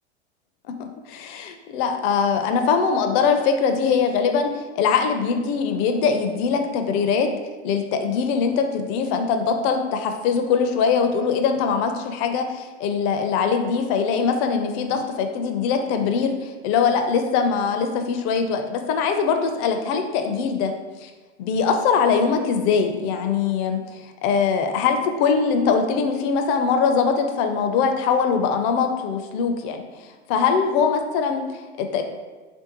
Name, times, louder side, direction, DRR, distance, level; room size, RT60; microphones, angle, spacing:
voice 1, 0.8-7.3 7.6-20.7 21.0-21.1 21.4-29.9 30.3-32.0, left 6 dB, 40° left, 6 dB, 0.4 m, -22 dB
3.3 x 2.6 x 2.8 m, 1.3 s
hypercardioid pair, 95°, 33 cm